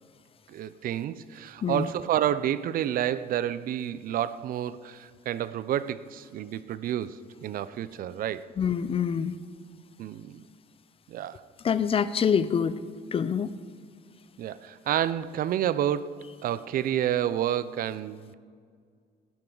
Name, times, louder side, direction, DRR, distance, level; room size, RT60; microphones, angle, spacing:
voice 1, 0.5-8.5 10.0-10.4 11.1-11.4 14.4-18.3, right 11 dB, 60° right, 16 dB, 0.5 m, -29 dB
voice 2, 8.6-9.4 11.6-12.8 13.1-13.5, left 7 dB, 35° left, 15 dB, 0.5 m, -25 dB
17.5 x 11.0 x 3.9 m, 2.1 s
cardioid pair, 110°, 17 cm